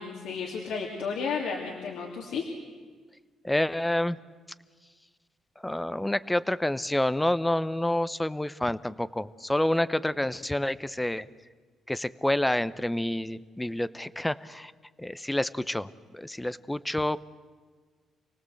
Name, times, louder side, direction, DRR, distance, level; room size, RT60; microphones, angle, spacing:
voice 1, 0.0-2.5, left 5 dB, 80° left, -1 dB, 2.9 m, -33 dB
voice 2, 3.4-4.2 5.6-11.3 11.9-14.7 15.0-17.3, left 1 dB, 10° left, 16 dB, 0.8 m, -28 dB
28.5 x 18.5 x 7.9 m, 1.5 s
cardioid pair, 90°, 0 cm